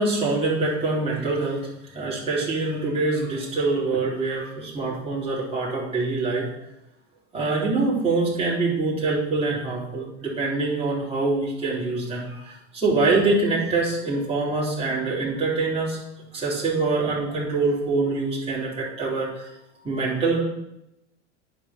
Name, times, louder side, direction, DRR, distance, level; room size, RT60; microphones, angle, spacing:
voice 1, 0.0-6.5 7.3-16.0 16.3-19.5 19.8-20.4, right 3 dB, 15° right, -6 dB, 3.8 m, -25 dB
10.0 x 5.1 x 6.0 m, 0.84 s
hypercardioid pair, 100°, 37 cm